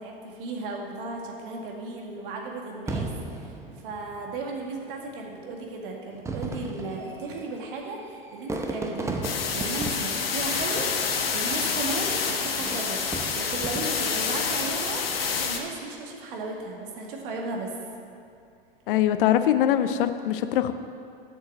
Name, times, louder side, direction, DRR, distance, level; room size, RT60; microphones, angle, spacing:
voice 1, 0.0-3.6 3.8-11.1 11.3-15.0 15.4-17.7, right 3 dB, 60° right, 0 dB, 1.9 m, -35 dB
Fireworks, 2.9-4.5 5.3-5.4 6.1-11.4 12.5-14.2 14.8-15.3, right 2 dB, 10° right, 0.8 m, -36 dB
sound 1, 9.2-15.6, left 5 dB, 80° left, 1.1 m, -28 dB
voice 2, 18.9-20.7, left 11 dB, 65° left, 11 dB, 0.6 m, -22 dB
7.9 x 6.4 x 7.7 m, 2.6 s
hypercardioid pair, 95°, 29 cm